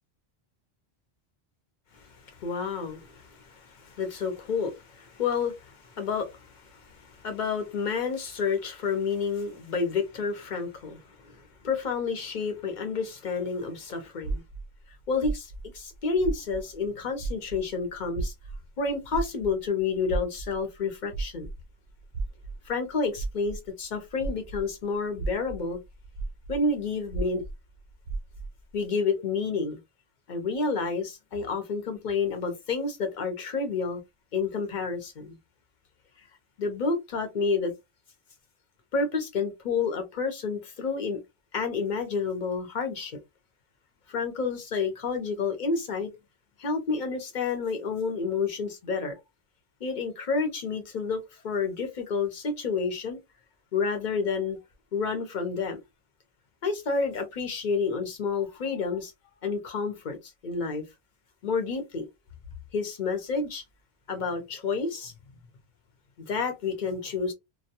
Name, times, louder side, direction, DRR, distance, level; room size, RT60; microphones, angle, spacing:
voice 1, 2.0-14.4 15.1-18.3 18.8-21.5 22.7-25.8 26.5-27.4 28.7-29.8 30.3-34.0 34.3-35.4 36.6-37.7 38.9-41.2 41.5-43.2 44.1-46.1 46.6-49.2 49.8-53.2 53.7-54.6 54.9-55.8 56.6-59.1 59.4-60.8 61.4-62.1 62.7-63.6 64.1-65.1 66.2-67.3, left 4 dB, 50° left, 0.8 m, -30 dB
sound 1, 14.2-16.9 17.2-24.7 25.1-28.6, right 3 dB, 80° right, 0.8 m, -35 dB
2.2 x 2.2 x 2.8 m
omnidirectional pair, 1.1 m